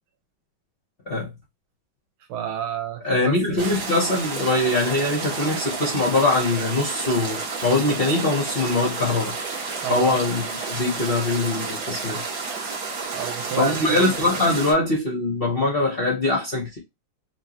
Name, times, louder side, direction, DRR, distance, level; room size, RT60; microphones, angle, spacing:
voice 1, 2.3-3.4 9.8-10.2 13.1-14.1, right 9 dB, 85° right, 1.7 m, -29 dB
voice 2, 3.0-9.3 9.9-12.2 13.6-16.8, left 2 dB, 50° left, 0.7 m, -22 dB
sound 1, 3.6-14.7, right 4 dB, 55° right, 1.6 m, -31 dB
4.6 x 2.4 x 2.8 m
omnidirectional pair, 2.3 m